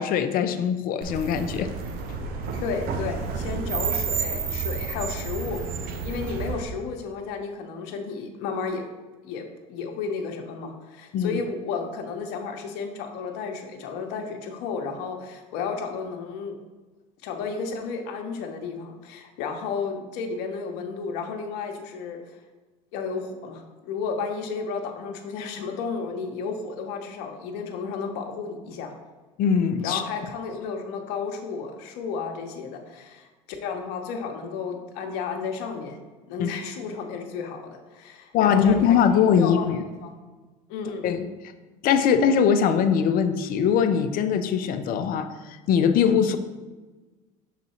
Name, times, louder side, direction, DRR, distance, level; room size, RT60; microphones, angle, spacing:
voice 1, 0.0-1.7 2.1-2.2 11.1-11.4 29.4-30.0 36.4-36.5 38.3-39.8 41.0-41.3 41.8-46.4, left 7 dB, 55° left, 9 dB, 0.6 m, -21 dB
sound 1, 1.0-6.6, right 5 dB, 60° right, 0.8 m, -30 dB
voice 2, 2.6-8.8 9.2-16.5 17.2-22.2 22.9-28.9 29.8-36.0 36.3-40.1 40.7-41.1, left 5 dB, 70° left, 4 dB, 1.0 m, -33 dB
6.0 x 3.9 x 4.3 m, 1.2 s
supercardioid pair, 85°, 17 cm